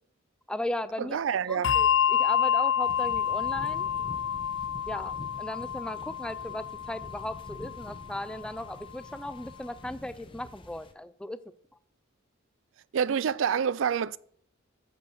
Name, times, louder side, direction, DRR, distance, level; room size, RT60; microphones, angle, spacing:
voice 1, 0.5-1.2 1.5-3.9 4.9-11.4, left 1 dB, 5° left, 0.4 m, -37 dB
voice 2, 1.0-1.7 12.9-14.2, right 7 dB, 70° right, 0.4 m, -27 dB
Bell, 1.6-8.5, left 8 dB, 65° left, 0.4 m, -28 dB
sound 1, 2.8-10.9, left 1 dB, 25° left, 0.7 m, -47 dB
10.5 x 5.3 x 6.5 m
head